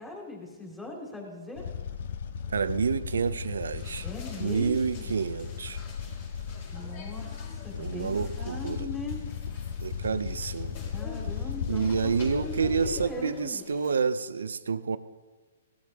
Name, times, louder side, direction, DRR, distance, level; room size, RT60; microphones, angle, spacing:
voice 1, 0.0-1.6 4.0-5.1 6.7-9.2 10.9-13.6, left 3 dB, 10° left, 3.2 m, -40 dB
sound 1, 1.6-13.1, left 7 dB, 60° left, 0.8 m, -36 dB
voice 2, 2.5-4.1 4.4-5.8 7.7-8.9 9.8-10.8 11.7-15.0, right 5 dB, 90° right, 0.6 m, -29 dB
sound 2, 3.8-14.0, left 2 dB, 40° left, 3.9 m, -47 dB
17.5 x 12.5 x 3.6 m
hypercardioid pair, 150°, 0 cm